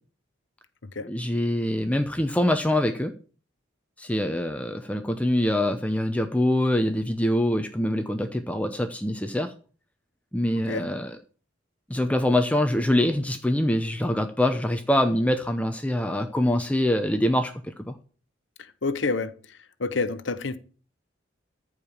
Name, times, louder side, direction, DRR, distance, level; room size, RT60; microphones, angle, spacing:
voice 1, 1.1-3.1 4.0-9.5 10.3-11.2 11.9-17.9, left 1 dB, 5° left, 0.7 m, -24 dB
voice 2, 18.8-19.3 19.8-20.6, left 3 dB, 75° left, 0.9 m, -27 dB
14.0 x 4.9 x 7.1 m
head